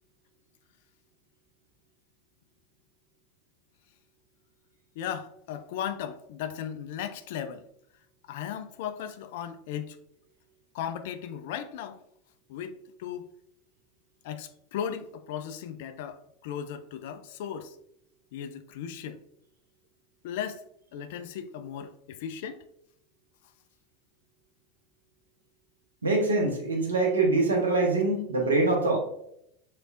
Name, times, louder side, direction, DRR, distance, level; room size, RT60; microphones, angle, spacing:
voice 1, 5.0-7.7 8.3-10.0 10.7-12.0 12.5-13.3 14.2-17.8 18.3-19.2 20.2-20.7 20.9-22.6, left 9 dB, 65° left, 0.3 m, -36 dB
voice 2, 26.0-29.0, right 2 dB, 85° right, 0.7 m, -24 dB
4.3 x 3.2 x 2.4 m
hypercardioid pair, 80°, 0 cm